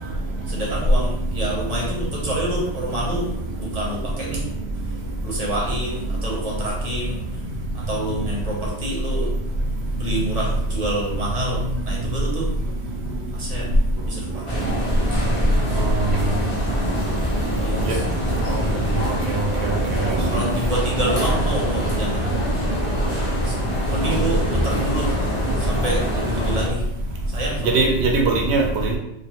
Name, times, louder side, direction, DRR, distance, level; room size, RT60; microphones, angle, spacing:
voice 1, 0.5-4.5 5.2-7.2 7.7-9.3 9.9-12.5 13.3-13.7 14.0-14.7 17.6-18.1 18.5-18.6 19.8-20.0 20.3-22.3 23.4-23.6 23.9-25.2 25.6-26.8 27.3-27.8, right 1 dB, 40° right, -4 dB, 0.8 m, -28 dB
sound 1, 14.5-26.7, equal, 35° left, 0.7 m, -24 dB
voice 2, 19.3-20.2 24.1-24.2 27.7-29.0, right 3 dB, 80° right, 1 dB, 0.9 m, -21 dB
2.5 x 2.4 x 2.9 m, 0.84 s
omnidirectional pair, 1.1 m